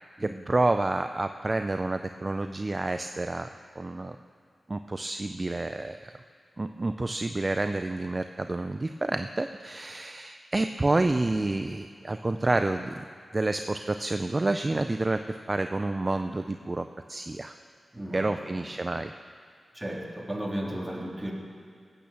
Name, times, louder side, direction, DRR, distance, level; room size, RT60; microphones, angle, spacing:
voice 1, 0.2-3.5 3.8-4.2 4.7-6.1 6.6-13.0 13.3-17.5 18.1-19.1, right 2 dB, 35° right, 8 dB, 0.5 m, -29 dB
voice 2, 17.9-18.6 19.7-21.3, right 1 dB, 10° right, -2 dB, 3.1 m, -35 dB
16.5 x 8.7 x 6.9 m, 2.1 s
cardioid pair, 55°, 0 cm